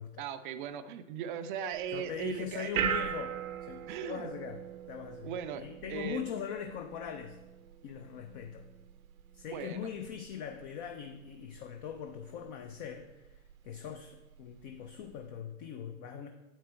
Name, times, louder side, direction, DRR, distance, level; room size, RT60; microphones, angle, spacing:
voice 1, 0.2-2.9 3.9-4.3 5.2-6.3 9.5-9.9, right 8 dB, 35° right, 10 dB, 0.5 m, -38 dB
sound 1, 1.7-15.3, right 9 dB, 70° right, 0.8 m, -42 dB
voice 2, 1.9-3.3 3.6-4.6 4.9-7.4 7.8-8.7 9.3-16.3, left 8 dB, 30° left, 6 dB, 0.6 m, -41 dB
9.1 x 7.9 x 4.5 m, 1.0 s
hypercardioid pair, 120°, 43 cm